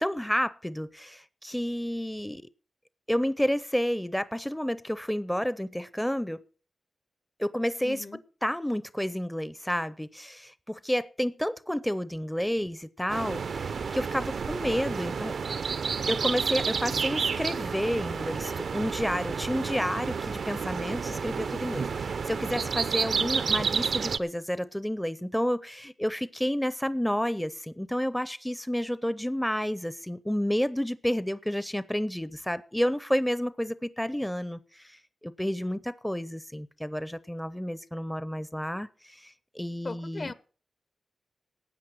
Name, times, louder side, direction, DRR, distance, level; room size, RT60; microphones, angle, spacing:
voice 1, 0.0-2.4 3.1-6.4 7.4-8.0 8.4-15.4 16.1-40.3, equal, 5° left, 0.6 m, -30 dB
voice 2, 7.8-8.2 35.5-35.8 39.8-40.3, left 3 dB, 45° left, 0.9 m, -39 dB
sound 1, 13.1-24.2, right 5 dB, 75° right, 0.6 m, -30 dB
13.0 x 8.4 x 6.2 m
cardioid pair, 70°, 0 cm